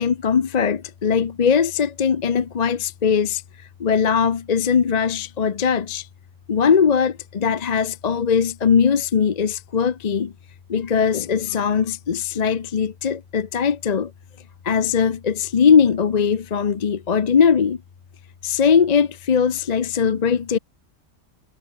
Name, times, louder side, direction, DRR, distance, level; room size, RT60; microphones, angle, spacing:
voice 1, 0.0-3.4 3.8-6.1 6.5-10.3 10.7-14.1 14.6-17.8 18.4-20.6, left 6 dB, 40° left, 0.7 m, -20 dB
omnidirectional pair, 1.3 m